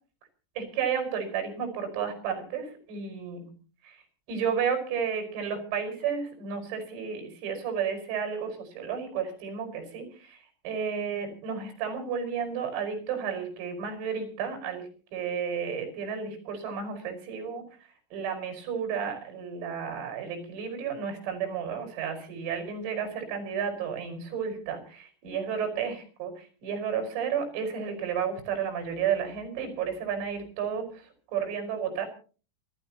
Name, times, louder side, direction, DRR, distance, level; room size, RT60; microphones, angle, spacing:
voice 1, 0.6-3.5 3.8-4.0 4.3-10.4 10.6-17.6 18.1-32.1, right 7 dB, 85° right, 6 dB, 8.1 m, -32 dB
29.0 x 13.5 x 3.0 m, 0.38 s
omnidirectional pair, 6.0 m